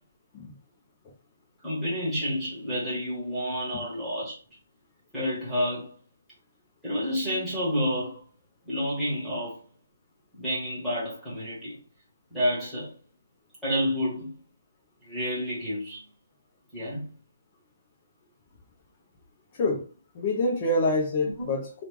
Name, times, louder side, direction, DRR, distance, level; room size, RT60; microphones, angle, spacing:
voice 1, 1.6-4.3 5.1-5.9 6.8-8.2 8.7-9.6 10.3-11.8 12.3-12.9 13.6-14.4 15.0-16.0 16.7-17.0 21.4-21.5, equal, ahead, 1.2 m, -29 dB
voice 2, 19.5-19.8 20.1-21.8, left 2 dB, 25° left, 0.7 m, -26 dB
3.0 x 2.4 x 3.5 m
hypercardioid pair, 175°, 0 cm